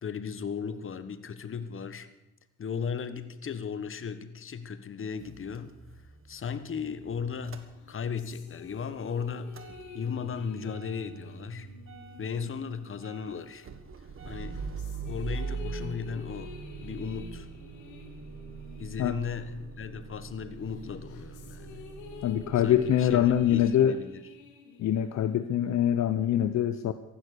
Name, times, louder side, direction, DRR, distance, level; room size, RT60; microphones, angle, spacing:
voice 1, 0.0-2.1 2.6-5.7 6.3-9.5 9.9-11.7 12.2-13.7 14.2-14.6 15.1-16.5 16.8-17.5 18.8-21.8 22.6-24.2, left 6 dB, 45° left, 12 dB, 1.3 m, -36 dB
Motor vehicle (road) / Engine starting / Idling, 5.2-8.3 8.7-23.6, right 5 dB, 45° right, 1.6 m, -42 dB
sound 1, 7.7-13.7 14.2-20.2 20.6-25.7, left 5 dB, 85° left, 2.2 m, -50 dB
voice 2, 22.2-24.0 24.8-26.9, left 10 dB, 65° left, 11 dB, 0.8 m, -24 dB
15.0 x 11.5 x 6.6 m, 0.92 s
cardioid pair, 90°, 30 cm